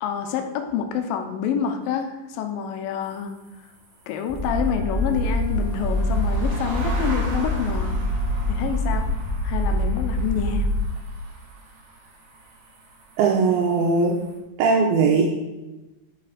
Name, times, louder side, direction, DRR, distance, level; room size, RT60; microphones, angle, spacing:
voice 1, 0.0-3.3 4.1-8.0 8.5-9.1 9.4-10.7, left 8 dB, 80° left, 5 dB, 2.6 m, -27 dB
sound 1, 3.0-14.4, right 3 dB, 50° right, 2.7 m, -41 dB
sound 2, 4.3-10.8, left 1 dB, 15° right, 2.9 m, -25 dB
Wind instrument woodwind instrument, 4.4-8.8, right 6 dB, 70° right, 3.8 m, -42 dB
voice 2, 13.2-14.1 14.6-15.2, right 4 dB, 85° right, -1 dB, 2.8 m, -19 dB
10.0 x 5.0 x 5.1 m, 1.1 s
omnidirectional pair, 4.2 m